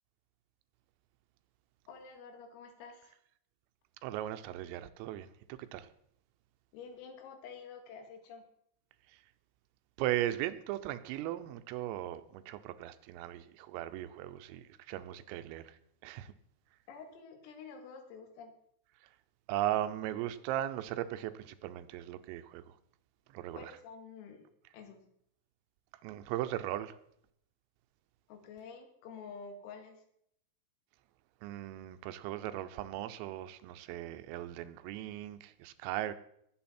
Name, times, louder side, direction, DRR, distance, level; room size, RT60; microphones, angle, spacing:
voice 1, 1.9-3.2 6.7-8.5 16.9-18.5 23.5-24.5 24.7-25.1 28.3-30.0, left 5 dB, 90° left, 5 dB, 4.5 m, -49 dB
voice 2, 4.0-5.3 5.6-5.9 9.1-9.2 10.0-16.3 19.0-19.1 19.5-22.8 23.3-23.7 26.0-27.0 31.4-36.1, right 13 dB, 85° right, 11 dB, 3.4 m, -38 dB
19.5 x 8.2 x 4.3 m, 0.71 s
omnidirectional pair, 5.9 m